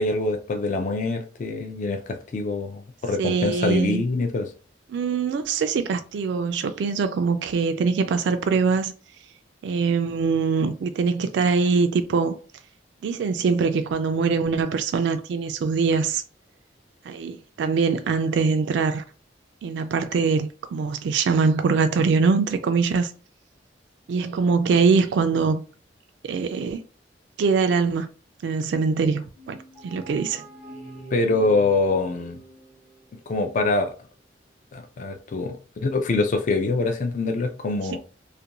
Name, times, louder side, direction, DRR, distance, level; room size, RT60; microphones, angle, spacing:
voice 1, 0.0-4.5 31.1-32.4 33.3-33.9 34.7-38.0, left 3 dB, 45° left, 0.3 m, -24 dB
voice 2, 3.2-4.0 4.9-8.9 9.6-12.3 13.0-16.2 17.0-19.0 19.6-23.1 24.1-25.6 26.2-26.8 27.4-28.1 28.4-29.6 29.8-30.4, right 5 dB, 70° right, 0.3 m, -23 dB
sound 1, 29.4-33.1, right 1 dB, 65° left, 1.0 m, -43 dB
2.4 x 2.2 x 2.8 m
head